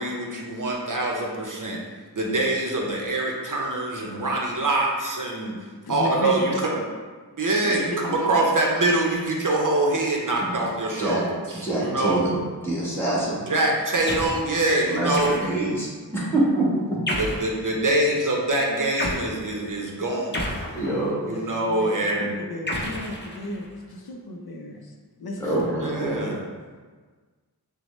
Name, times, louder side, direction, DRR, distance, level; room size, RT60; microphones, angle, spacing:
voice 1, 0.0-1.8 2.2-5.6 5.9-6.7 7.4-12.2 13.5-15.3 17.2-20.6 21.3-22.3 25.8-26.4, right 2 dB, 55° right, -1 dB, 0.7 m, -24 dB
voice 2, 5.7-6.8 7.6-8.3 11.7-12.1 17.7-18.0 21.2-21.9 22.2-24.9 25.2-25.6, left 1 dB, 70° left, 2 dB, 0.5 m, -34 dB
voice 3, 11.6-12.4 12.6-13.4 14.6-17.0 20.7-21.3 25.4-26.3, right 1 dB, 5° left, -6 dB, 1.4 m, -25 dB
sound 1, 14.1-14.5 15.1-15.7 17.1-17.5 19.0-19.3 20.3-21.2 22.7-23.7, left 1 dB, 30° left, 0.7 m, -30 dB
6.0 x 2.1 x 3.1 m, 1.5 s
wide cardioid pair, 65°, 39 cm